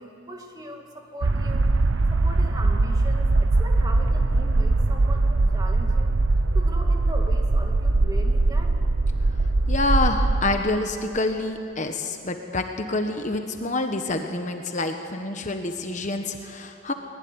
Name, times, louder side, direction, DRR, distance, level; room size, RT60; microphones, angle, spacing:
voice 1, 0.0-1.7 2.0-6.1 6.5-8.8, right 1 dB, 20° right, 2 dB, 2.4 m, -39 dB
sound 1, 1.2-10.6, right 2 dB, 70° right, 0.8 m, -21 dB
voice 2, 9.7-16.9, left 2 dB, 35° left, 5 dB, 1.2 m, -27 dB
23.5 x 20.0 x 9.7 m, 2.6 s
head